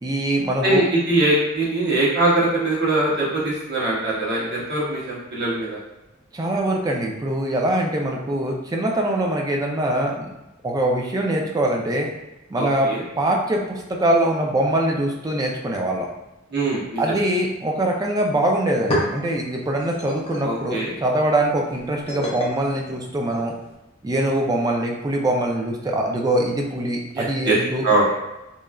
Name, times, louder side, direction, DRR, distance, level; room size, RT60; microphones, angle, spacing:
voice 1, 0.0-0.8 6.3-10.3 10.6-12.1 12.5-12.9 13.2-16.1 17.0-23.5 24.0-27.9, right 1 dB, 20° right, 0 dB, 0.3 m, -23 dB
voice 2, 0.6-5.8 12.5-13.0 16.5-17.0 20.4-20.9 27.1-27.6 27.8-28.1, right 2 dB, 55° right, -6 dB, 0.9 m, -22 dB
sound 1, 18.6-23.7, equal, 30° left, 0.5 m, -32 dB
3.0 x 2.4 x 2.2 m, 0.97 s
head